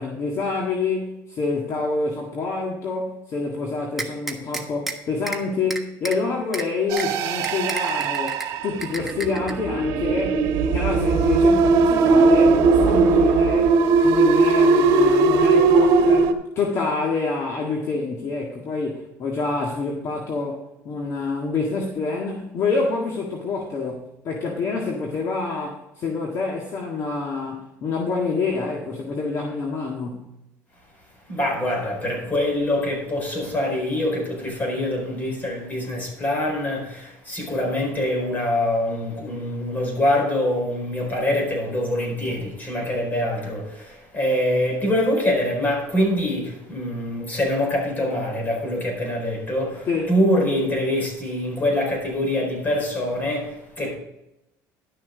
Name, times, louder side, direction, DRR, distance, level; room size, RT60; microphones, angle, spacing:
voice 1, 0.0-13.8 14.0-30.3 49.9-50.1, left 4 dB, 45° left, 0 dB, 1.7 m, -27 dB
sound 1, 4.0-4.9 5.3-5.4 5.7-6.2 6.5-6.6 7.0-7.1 7.4-8.5 8.8-9.5, right 2 dB, 5° right, 1.3 m, -30 dB
sound 2, 6.9-16.3, right 4 dB, 75° right, 1.2 m, -18 dB
voice 2, 31.3-54.0, left 1 dB, 25° left, 0 dB, 4.6 m, -24 dB
11.5 x 6.5 x 5.1 m, 0.88 s
cardioid pair, 125°, 7 cm